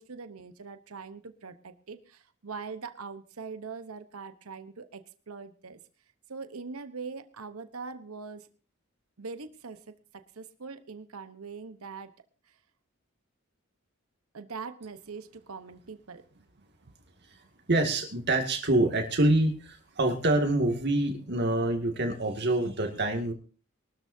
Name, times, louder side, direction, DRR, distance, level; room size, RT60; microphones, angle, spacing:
voice 1, 0.0-5.8 6.3-8.5 9.2-12.1 12.5-12.6 14.3-16.2 16.9-17.0, right 4 dB, 85° right, 10 dB, 1.0 m, -42 dB
voice 2, 17.7-23.3, right 1 dB, 50° right, 4 dB, 2.2 m, -26 dB
22.5 x 13.0 x 2.7 m, 0.37 s
head